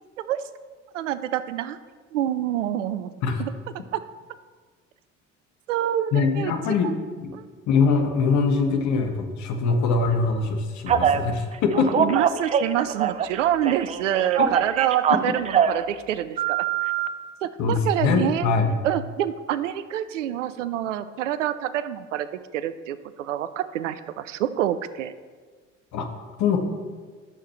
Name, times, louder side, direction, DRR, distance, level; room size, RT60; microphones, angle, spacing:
voice 1, 0.9-1.8 2.1-3.1 3.4-3.5 3.9-4.0 5.7-6.8 7.3-7.4 12.0-16.9 17.4-18.5 18.8-22.3 22.5-25.1, right 11 dB, 70° right, 14 dB, 0.5 m, -27 dB
voice 2, 6.1-6.9 7.2-7.3 7.7-12.1 14.4-14.5 17.6-18.7 25.9-26.1 26.4-26.6, left 4 dB, 45° left, 4 dB, 1.3 m, -22 dB
Telephone, 10.9-11.2 11.7-13.4 13.6-15.8 16.4-17.1, right 8 dB, 20° right, 0.3 m, -23 dB
14.5 x 6.5 x 3.1 m, 1.5 s
figure-of-eight pair, 60°, 38 cm